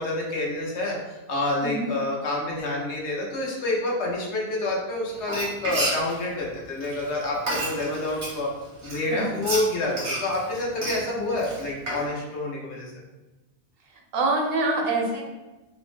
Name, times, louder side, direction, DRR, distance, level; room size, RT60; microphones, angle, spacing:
voice 1, 0.0-8.5 8.8-12.9, left 2 dB, 80° left, -3 dB, 1.1 m, -28 dB
Frying (food), 5.2-8.4 8.8-12.1, right 1 dB, 90° right, 1.3 m, -30 dB
voice 2, 9.1-9.5 14.1-15.2, right 2 dB, 65° right, 1 dB, 0.7 m, -25 dB
3.5 x 2.0 x 3.1 m, 1.1 s
omnidirectional pair, 1.1 m